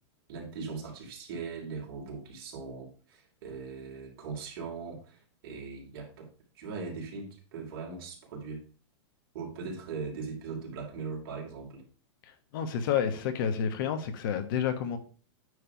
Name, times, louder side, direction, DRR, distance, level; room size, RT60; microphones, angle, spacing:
voice 1, 0.3-6.3 6.5-8.6 9.3-11.8, right 4 dB, 50° right, 0 dB, 3.1 m, -40 dB
voice 2, 12.5-15.0, left 8 dB, 50° left, 9 dB, 1.2 m, -29 dB
9.4 x 3.3 x 5.8 m, 0.38 s
supercardioid pair, 160°, 14 cm